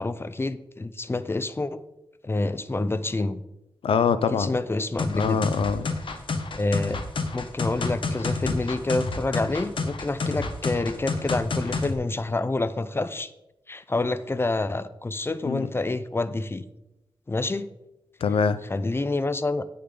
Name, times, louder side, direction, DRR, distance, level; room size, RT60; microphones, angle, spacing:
voice 1, 0.0-1.8 2.2-3.4 4.3-5.4 6.5-7.0 7.3-13.3 13.7-16.6 17.3-17.7 18.7-19.6, left 2 dB, 25° left, 14 dB, 0.6 m, -27 dB
voice 2, 3.8-4.6 5.1-5.9 15.4-15.7 18.2-18.6, left 6 dB, 85° left, 14 dB, 0.6 m, -24 dB
sound 1, 5.0-11.9, left 3 dB, 65° left, 1.1 m, -29 dB
10.0 x 8.6 x 3.8 m, 0.92 s
cardioid pair, 65°, 9 cm